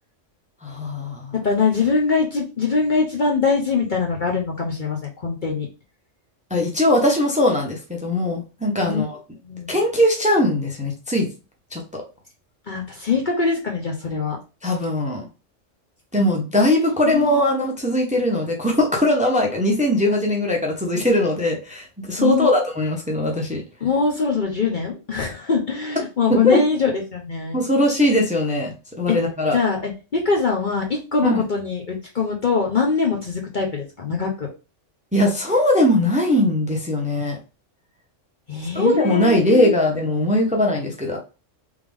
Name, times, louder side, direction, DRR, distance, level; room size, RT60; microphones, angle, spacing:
voice 1, 0.6-1.3 6.5-9.2 9.7-11.3 11.7-11.8 14.6-15.2 16.1-23.6 26.3-26.6 27.5-29.6 31.2-31.4 35.1-37.4 38.7-41.2, left 1 dB, 5° right, 1 dB, 0.7 m, -20 dB
voice 2, 1.4-5.7 8.8-9.0 9.4-9.7 12.7-14.4 17.0-17.4 22.2-22.5 23.8-27.6 29.1-29.2 29.5-34.5 38.5-39.8, left 5 dB, 45° left, 0 dB, 0.8 m, -23 dB
3.5 x 3.4 x 3.4 m, 0.32 s
omnidirectional pair, 1.3 m